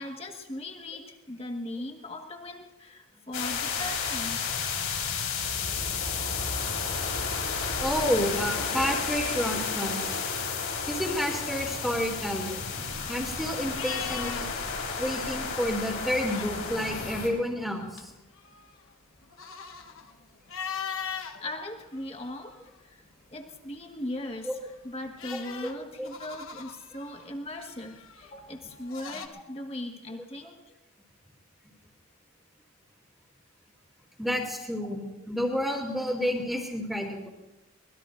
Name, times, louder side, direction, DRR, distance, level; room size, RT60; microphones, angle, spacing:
voice 1, 0.0-4.5 21.3-23.0 23.3-24.6 24.8-30.7, left 1 dB, 25° left, 2 dB, 1.6 m, -39 dB
sound 1, 3.3-17.3, left 5 dB, 90° left, 4.5 m, -32 dB
voice 2, 7.8-10.2 10.9-12.6 13.1-14.5 15.0-18.1 24.4-24.5 25.3-25.4 26.0-26.1 34.2-37.3, equal, ahead, 0 dB, 2.6 m, -30 dB
sound 2, 12.6-14.7 15.0-15.2 16.0-16.9 17.4-21.4 21.9-22.9 24.4-29.3, left 7 dB, 70° left, 1.2 m, -40 dB
24.5 x 20.0 x 2.6 m, 1.0 s
head